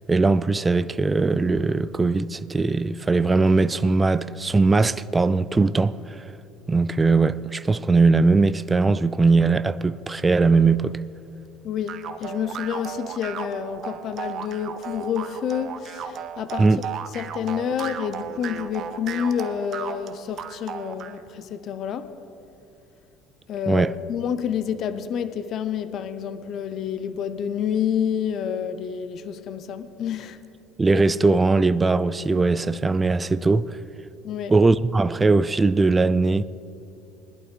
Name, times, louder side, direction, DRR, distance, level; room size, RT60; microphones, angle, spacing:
voice 1, 0.1-6.0 6.7-11.0 16.6-16.8 23.7-23.9 30.8-33.8 34.5-36.4, right 3 dB, 20° right, 0.3 m, -20 dB
voice 2, 11.6-16.8 17.1-22.2 23.5-30.4 34.2-34.6, left 8 dB, 50° left, 0.6 m, -29 dB
sound 1, 11.9-21.2, right 8 dB, 50° right, 0.7 m, -35 dB
20.5 x 11.5 x 3.3 m
supercardioid pair, 105°, 0 cm